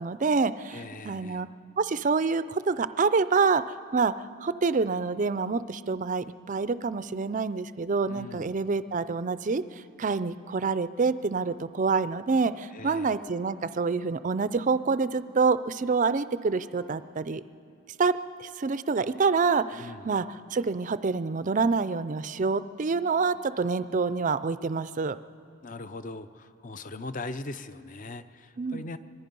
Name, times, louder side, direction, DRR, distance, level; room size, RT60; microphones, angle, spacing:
voice 1, 0.0-1.5 1.8-17.4 18.0-25.2 28.6-28.9, right 4 dB, 35° right, 14 dB, 0.4 m, -27 dB
voice 2, 0.7-1.5 8.1-8.5 12.7-13.1 19.7-20.1 25.6-29.0, left 2 dB, 35° left, 12 dB, 0.6 m, -40 dB
25.0 x 21.0 x 5.4 m, 2.6 s
head